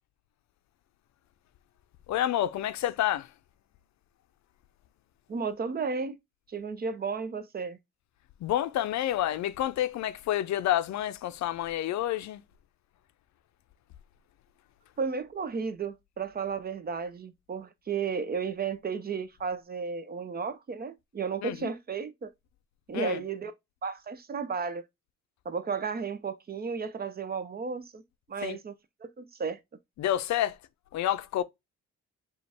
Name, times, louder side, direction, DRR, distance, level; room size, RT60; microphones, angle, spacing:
voice 1, 2.1-3.3 8.4-12.4 21.4-21.7 22.9-23.2 28.4-28.6 30.0-30.6 30.9-31.4, left 12 dB, 65° left, 0.5 m, -29 dB
voice 2, 5.3-6.2 6.5-7.8 15.0-22.3 22.9-23.5 23.8-24.8 25.5-28.0 28.3-28.7 29.0-29.6, right 5 dB, 30° right, 0.5 m, -33 dB
5.0 x 2.4 x 3.3 m
cardioid pair, 90°, 30 cm